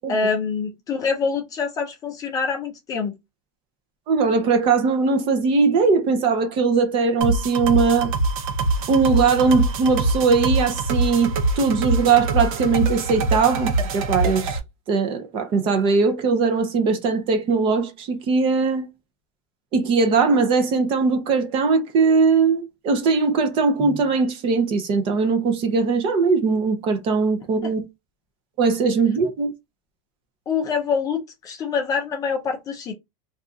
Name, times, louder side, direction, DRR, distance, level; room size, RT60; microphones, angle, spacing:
voice 1, 0.1-3.2 27.6-27.7 30.5-32.9, left 5 dB, 20° left, 0.4 m, -25 dB
voice 2, 4.1-8.1 8.9-14.6 14.9-18.9 19.7-27.8 28.6-29.5, right 4 dB, 30° right, 0.6 m, -20 dB
sound 1, 7.2-14.6, right 2 dB, 70° right, 0.7 m, -24 dB
2.7 x 2.4 x 3.6 m
supercardioid pair, 175°, 18 cm